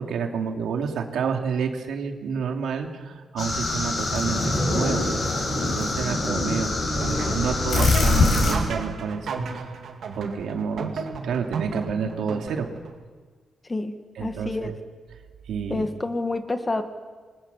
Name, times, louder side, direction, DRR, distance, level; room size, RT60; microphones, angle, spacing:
voice 1, 0.0-5.1 5.8-9.8 10.2-12.7 14.2-14.7 15.5-15.9, right 6 dB, 90° right, 3 dB, 2.8 m, -29 dB
sound 1, 3.4-8.5, left 2 dB, 45° left, 7.6 m, -23 dB
sound 2, 7.0-12.9, right 5 dB, 60° right, 2.5 m, -33 dB
voice 2, 14.2-14.7 15.7-16.8, left 2 dB, 15° left, 8 dB, 1.5 m, -28 dB
28.5 x 22.5 x 7.1 m, 1.5 s
wide cardioid pair, 170°, 0 cm